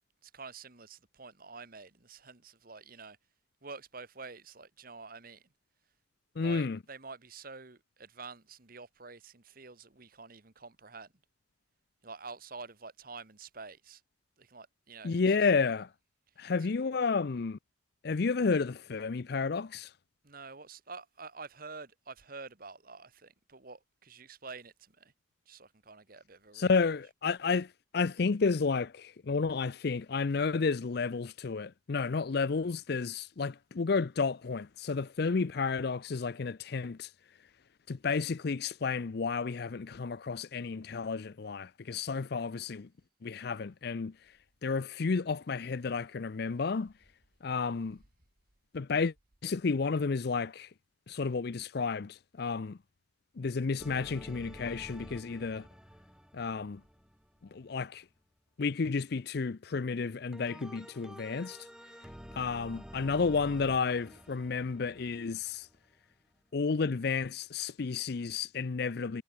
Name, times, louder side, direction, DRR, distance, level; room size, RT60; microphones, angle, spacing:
voice 1, 0.2-3.2 3.6-5.4 6.4-11.1 12.0-14.0 14.4-15.5 16.4-16.7 20.2-25.1 25.5-26.8 27.0-27.1, right 4 dB, 50° right, 1.8 m, -48 dB
voice 2, 6.4-6.8 15.0-15.9 16.4-17.6 18.0-19.9 26.5-37.1 37.9-42.9 43.2-44.1 44.6-46.9 47.4-48.0 48.7-49.1 49.4-50.7 51.1-52.8 53.4-55.7 56.3-56.8 57.5-58.0 58.6-61.7 62.3-65.7 66.5-69.2, left 4 dB, 55° left, 0.5 m, -31 dB
sound 1, 53.8-57.9 60.3-66.0, equal, 5° right, 2.2 m, -50 dB
head